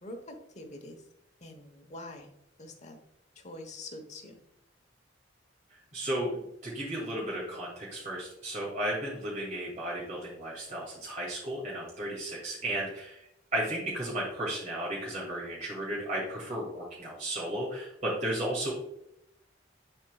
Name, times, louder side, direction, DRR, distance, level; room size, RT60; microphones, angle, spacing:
voice 1, 0.0-1.0 1.4-2.3 2.6-3.0 3.4-4.4, left 1 dB, 40° left, 5 dB, 1.1 m, -45 dB
voice 2, 5.9-13.2 13.5-18.7, right 1 dB, 40° right, -6 dB, 2.3 m, -34 dB
10.0 x 4.5 x 2.3 m, 0.81 s
head